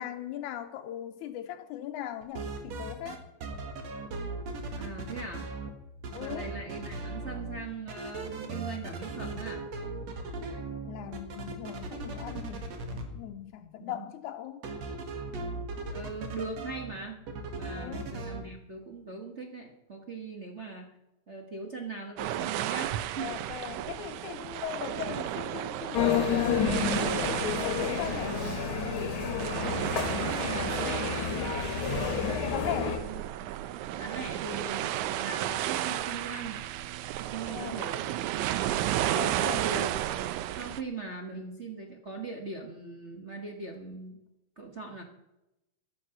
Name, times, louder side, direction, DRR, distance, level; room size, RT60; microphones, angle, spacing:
voice 1, 0.0-3.2 6.1-6.5 10.8-14.6 17.8-18.0 23.2-26.7 27.2-28.4 32.2-33.0 37.5-37.9 39.1-39.7, left 11 dB, 85° left, 2.2 m, -39 dB
sound 1, 2.2-3.2 3.4-5.7 6.0-7.6 7.9-13.0 14.6-16.9 17.3-18.4, right 3 dB, 65° right, 2.9 m, -38 dB
voice 2, 4.8-5.5 6.1-9.7 13.8-14.1 15.9-17.2 17.5-20.9 21.3-23.4 24.9-25.1 27.5-28.6 29.4-31.4 32.1-33.2 34.0-36.7 37.2-38.1 39.2-39.9 40.6-44.2 44.6-45.0, right 3 dB, 40° right, 1.0 m, -40 dB
sound 2, 22.2-40.8, right 13 dB, 85° right, 2.1 m, -33 dB
sound 3, 25.9-33.0, left 6 dB, 45° left, 2.5 m, -30 dB
14.0 x 11.0 x 5.7 m
omnidirectional pair, 3.4 m